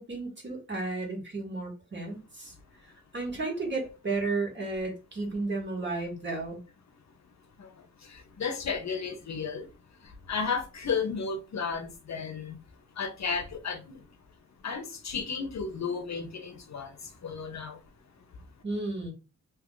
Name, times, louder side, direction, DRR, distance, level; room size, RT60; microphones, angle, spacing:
voice 1, 0.0-2.5 3.1-6.6 18.6-19.1, right 3 dB, 35° right, 1.4 m, -33 dB
voice 2, 7.6-9.7 10.0-12.6 13.0-14.0 14.6-17.8, left 5 dB, 60° left, 0.6 m, -34 dB
2.8 x 2.4 x 3.6 m
wide cardioid pair, 135°, 31 cm